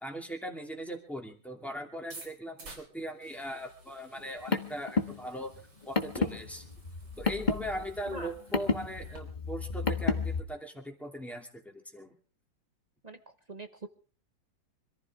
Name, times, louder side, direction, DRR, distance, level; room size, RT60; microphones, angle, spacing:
voice 1, 0.0-6.6 7.2-12.1, equal, ahead, 2 dB, 2.5 m, -40 dB
sound 1, 2.0-9.2, right 2 dB, 85° right, 5.6 m, -53 dB
Car, 4.2-10.4, left 5 dB, 25° left, 1.3 m, -32 dB
voice 2, 13.5-13.9, right 2 dB, 30° right, 8 dB, 0.9 m, -42 dB
25.5 x 14.5 x 3.6 m, 0.39 s
omnidirectional pair, 2.0 m